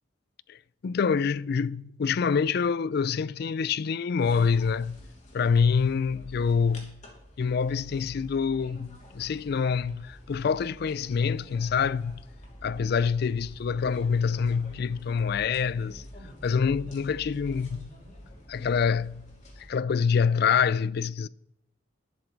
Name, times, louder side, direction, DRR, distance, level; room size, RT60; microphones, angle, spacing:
voice 1, 0.8-5.0 5.3-7.0 7.4-12.2 12.6-16.0 16.4-17.9 18.5-19.3 19.7-21.3, left 6 dB, 55° left, 0.4 m, -26 dB
sound 1, 4.2-19.7, equal, 40° left, 2.7 m, -47 dB
11.5 x 10.5 x 4.6 m
head